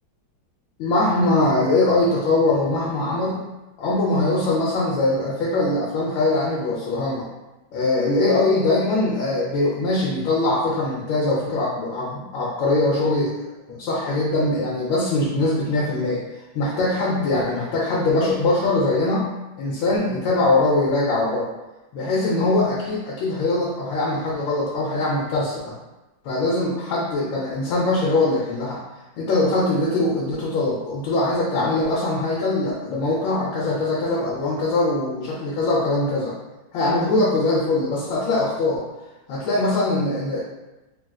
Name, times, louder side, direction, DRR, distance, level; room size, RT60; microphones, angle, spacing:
voice 1, 0.8-3.4 3.8-7.3 7.7-13.3 13.7-16.3 16.5-19.3 19.6-21.5 21.9-25.6 26.2-28.8 29.2-36.4 36.7-38.9 39.3-40.4, left 2 dB, 90° left, -4 dB, 1.4 m, -22 dB
3.5 x 2.4 x 2.3 m, 1.1 s
omnidirectional pair, 2.0 m